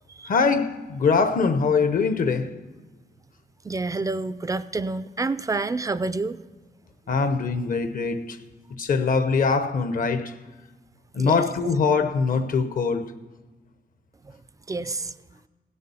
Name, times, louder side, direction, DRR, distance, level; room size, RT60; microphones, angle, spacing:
voice 1, 0.3-2.6 7.1-8.4 8.8-10.3 11.1-13.0, left 5 dB, 55° left, 0.8 m, -23 dB
voice 2, 3.7-6.4 11.2-11.3 14.7-15.1, right 3 dB, 20° right, 0.3 m, -28 dB
16.5 x 6.7 x 6.9 m
wide cardioid pair, 155°, 17 cm